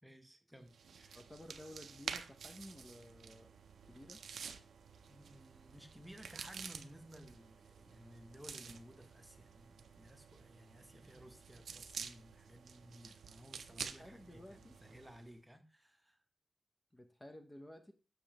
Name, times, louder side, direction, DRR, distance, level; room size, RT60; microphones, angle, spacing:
voice 1, 0.0-1.2 5.1-16.2, equal, 10° right, 0.9 m, -57 dB
sound 1, 0.7-15.3, right 6 dB, 85° right, 0.5 m, -50 dB
voice 2, 1.1-3.5 3.9-4.2 13.0-13.1 13.8-14.8 16.9-17.9, left 1 dB, 15° left, 0.7 m, -54 dB
7.0 x 6.5 x 2.9 m
wide cardioid pair, 100°, 0 cm